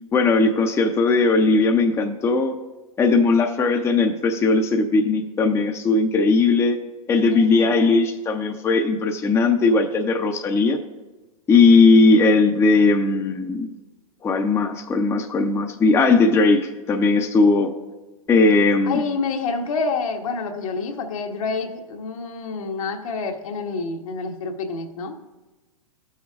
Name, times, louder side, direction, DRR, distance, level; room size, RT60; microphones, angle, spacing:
voice 1, 0.1-2.6 3.0-6.8 7.1-10.8 11.5-13.7 14.2-17.7 18.3-19.0, left 3 dB, 15° left, 4 dB, 0.5 m, -18 dB
voice 2, 7.3-7.8 18.8-25.1, left 4 dB, 75° left, 3 dB, 1.3 m, -28 dB
18.5 x 6.2 x 2.4 m, 1.2 s
hypercardioid pair, 115°, 18 cm